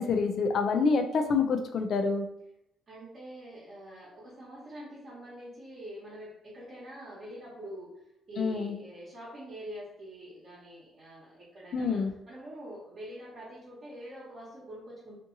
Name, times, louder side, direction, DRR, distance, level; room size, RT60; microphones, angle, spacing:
voice 1, 0.0-2.3 8.4-8.7 11.7-12.1, left 4 dB, 60° left, 5 dB, 0.4 m, -27 dB
voice 2, 2.9-15.2, right 1 dB, 50° right, -9 dB, 1.1 m, -45 dB
2.6 x 2.6 x 2.6 m, 0.79 s
cardioid pair, 85°, 0 cm